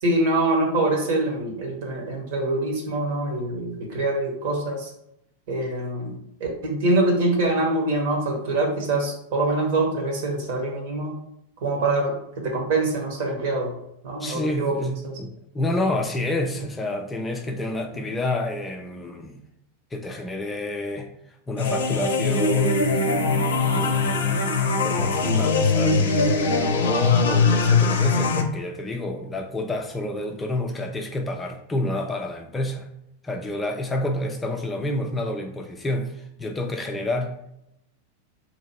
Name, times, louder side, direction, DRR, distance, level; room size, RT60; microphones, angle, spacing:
voice 1, 0.0-4.9 5.5-6.1 6.4-11.1 11.6-12.1 12.4-13.7 14.0-14.7 15.0-15.1 17.9-18.0, right 2 dB, 50° right, 1 dB, 1.2 m, -24 dB
voice 2, 14.2-19.4 19.9-23.0 23.7-32.9 33.2-37.3, left 1 dB, 15° left, 3 dB, 0.4 m, -29 dB
sound 1, 21.6-28.4, left 4 dB, 60° left, 0.5 m, -21 dB
2.9 x 2.6 x 4.3 m, 0.79 s
figure-of-eight pair, 90°, 0 cm